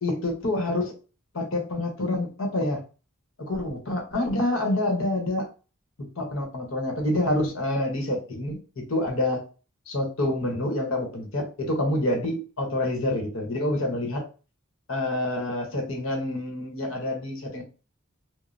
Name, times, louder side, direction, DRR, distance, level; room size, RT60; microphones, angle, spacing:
voice 1, 0.0-1.0 1.3-2.8 3.4-5.5 6.0-9.4 9.9-14.3 14.9-17.6, left 1 dB, 70° left, 2 dB, 0.9 m, -27 dB
3.1 x 2.0 x 2.5 m, 0.34 s
head